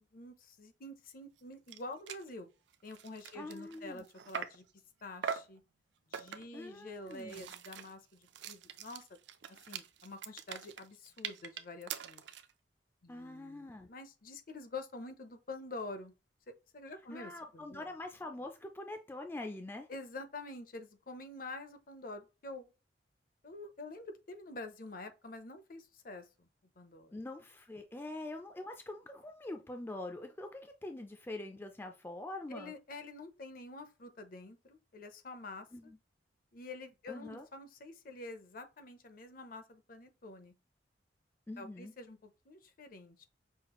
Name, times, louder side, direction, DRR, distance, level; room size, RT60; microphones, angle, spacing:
voice 1, 0.1-2.5 2.8-4.6 5.0-5.6 6.1-9.1 9.7-12.2 13.0-16.1 16.7-17.9 19.9-22.7 23.4-26.5 26.8-27.1 32.5-35.9 36.5-40.5 41.6-43.3, left 2 dB, 50° left, 0.6 m, -47 dB
sound 1, 1.4-1.5 1.7-1.8 2.1-2.3 2.7-4.7 5.2-5.6 6.1-6.6 7.1-12.5, right 7 dB, 70° right, 0.5 m, -43 dB
voice 2, 3.3-4.0 6.5-7.5 13.1-13.9 17.1-19.9 27.1-32.7 35.7-36.0 37.1-37.5 41.5-41.9, left 2 dB, 10° left, 0.3 m, -44 dB
5.7 x 2.4 x 2.9 m
head